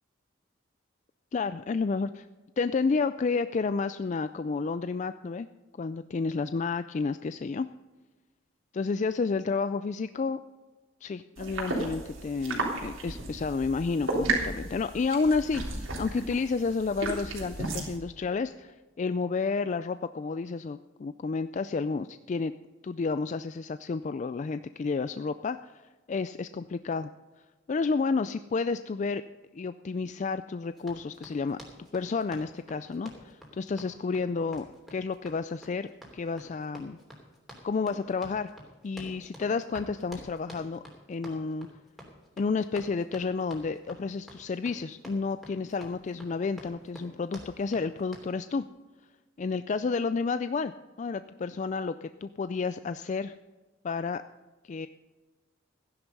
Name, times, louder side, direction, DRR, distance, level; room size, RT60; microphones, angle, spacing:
voice 1, 1.3-2.3 2.6-5.5 5.8-7.7 8.7-10.4 11.0-22.5 22.8-27.1 27.7-29.2 29.5-31.6 31.9-34.7 34.9-37.0 37.6-38.5 38.8-40.8 41.1-41.7 42.4-48.7 49.4-50.7 51.0-53.4 53.8-54.2 54.6-54.9, left 4 dB, 35° left, 12 dB, 0.3 m, -31 dB
sound 1, 11.4-18.0, right 2 dB, 80° right, 3.6 m, -34 dB
Run, 30.8-48.3, equal, ahead, 3.0 m, -49 dB
15.0 x 10.5 x 5.4 m, 1.3 s
head